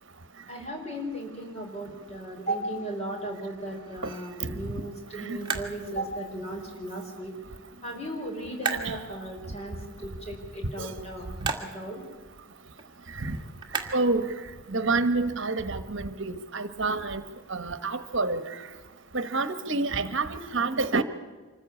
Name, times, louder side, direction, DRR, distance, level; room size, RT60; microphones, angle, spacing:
voice 1, 0.5-7.3 7.8-9.8 10.0-11.3 11.7-12.0, right 1 dB, 30° left, 1 dB, 4.9 m, -36 dB
sound 1, 1.6-14.8, right 5 dB, 20° right, 1.9 m, -41 dB
voice 2, 13.9-14.2 14.7-17.2 17.5-18.4 19.1-21.0, right 3 dB, 60° right, 11 dB, 1.2 m, -27 dB
25.5 x 15.0 x 8.6 m, 1.4 s
head